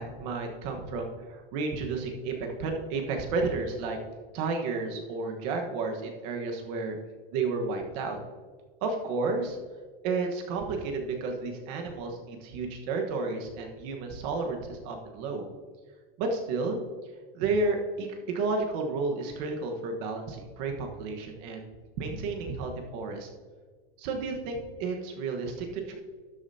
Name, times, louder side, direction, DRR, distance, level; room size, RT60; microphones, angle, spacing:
voice 1, 0.0-4.0 4.3-7.0 7.3-8.2 8.8-9.6 10.0-15.5 16.2-16.8 17.3-21.7 22.0-23.3 24.0-26.0, right 3 dB, 45° right, 3 dB, 1.4 m, -32 dB
12.0 x 8.8 x 2.8 m, 1.5 s
supercardioid pair, 160°, 30 cm